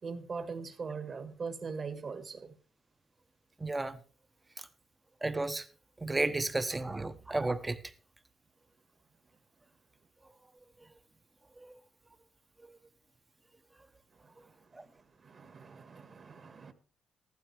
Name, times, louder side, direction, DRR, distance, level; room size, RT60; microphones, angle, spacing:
voice 1, 0.0-2.6 14.2-16.7, right 5 dB, 45° right, 1.8 m, -42 dB
voice 2, 3.6-4.0 4.6-4.7 5.2-5.6 6.0-7.8 12.7-12.8 14.7-14.8, right 2 dB, 15° right, 1.0 m, -33 dB
14.5 x 12.5 x 3.4 m
cardioid pair, 90°, 0 cm